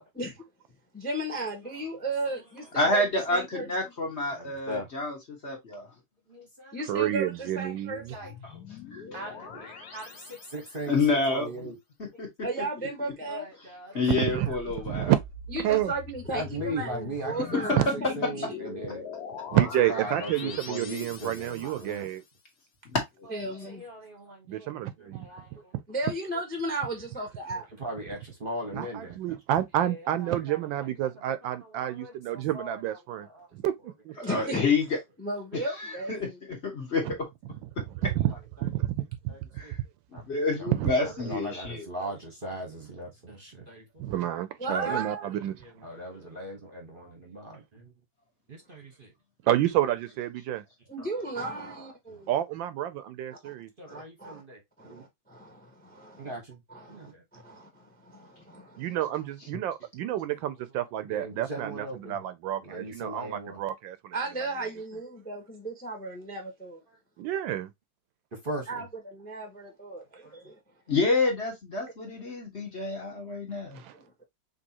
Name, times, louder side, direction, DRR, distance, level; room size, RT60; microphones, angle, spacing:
voice 1, 0.9-3.7 6.7-8.4 12.4-13.5 15.5-18.1 18.5-18.6 23.3-23.8 25.9-27.7 34.2-34.6 35.2-36.1 44.6-45.3 50.9-52.4 53.4-53.5 53.9-54.4 54.8-56.4 56.7-58.9 64.1-66.8 68.7-70.6 73.9-74.2, right 2 dB, 5° left, 0.8 m, -35 dB
voice 2, 2.7-5.9 8.4-8.6 8.9-9.0 10.9-11.7 12.0-12.3 13.9-15.1 17.4-17.9 22.8-23.3 23.6-23.7 34.2-34.9 35.8-37.2 39.6-39.8 40.1-41.8 70.9-73.8, left 3 dB, 35° left, 1.6 m, -28 dB
voice 3, 4.3-4.9 6.3-6.8 8.1-8.3 9.1-11.8 13.3-13.9 16.3-19.0 19.5-22.1 23.7-25.6 27.8-29.2 29.8-30.6 31.4-32.8 33.2-33.5 38.0-38.1 39.3-39.7 40.1-40.2 40.6-40.7 41.2-43.8 44.7-45.0 45.8-47.9 48.5-49.1 51.0-51.1 52.1-52.2 53.8-55.0 56.2-56.6 56.9-57.2 58.9-59.0 61.1-62.2 62.6-63.6 68.4-68.8 70.2-70.4, right 1 dB, 35° right, 1.1 m, -39 dB
voice 4, 6.9-8.1 14.1-14.5 14.8-15.2 15.6-15.9 17.8-17.9 19.5-22.2 24.5-25.3 25.7-25.8 28.7-33.3 33.5-33.7 34.0-34.1 37.0-37.1 38.2-38.3 38.6-39.3 40.7-40.9 44.0-45.5 49.5-50.6 52.3-53.7 58.8-64.1 67.2-67.7 73.7-73.9, right 12 dB, 80° right, 1.3 m, -29 dB
sound 1, 7.9-11.0 14.4-22.0, left 5 dB, 60° left, 1.4 m, -42 dB
5.3 x 3.3 x 2.8 m
omnidirectional pair, 2.1 m